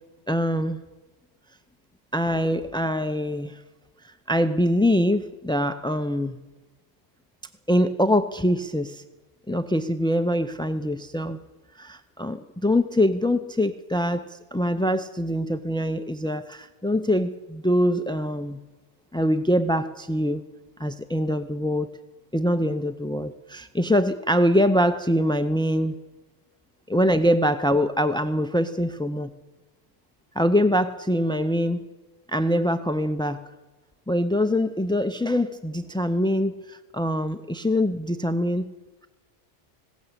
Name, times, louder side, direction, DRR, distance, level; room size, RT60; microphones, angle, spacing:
voice 1, 0.3-0.8 2.1-3.6 4.0-6.4 7.7-9.0 9.5-11.4 11.8-18.6 19.1-20.4 20.8-21.9 22.3-25.9 26.9-29.3 30.3-31.8 32.3-33.4 34.1-38.7, equal, 5° left, 10 dB, 0.3 m, -24 dB
19.5 x 17.5 x 8.1 m, 1.2 s
omnidirectional pair, 1.2 m